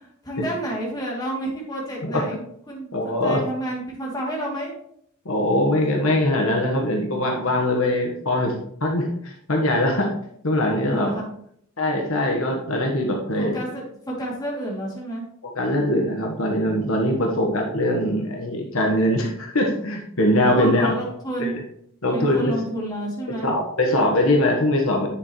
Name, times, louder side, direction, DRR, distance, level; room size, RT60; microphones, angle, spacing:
voice 1, 0.0-2.4 2.7-4.7 10.9-11.3 13.4-15.3 17.2-17.5 20.4-21.5 22.1-23.5, right 1 dB, 20° left, -4 dB, 2.8 m, -30 dB
voice 2, 2.9-3.4 5.2-8.5 8.8-10.1 10.4-11.1 11.8-13.6 15.4-20.9 21.4-21.6 22.0-22.5 23.4-25.1, left 1 dB, 80° left, 1 dB, 1.4 m, -22 dB
9.7 x 7.2 x 3.2 m, 0.68 s
head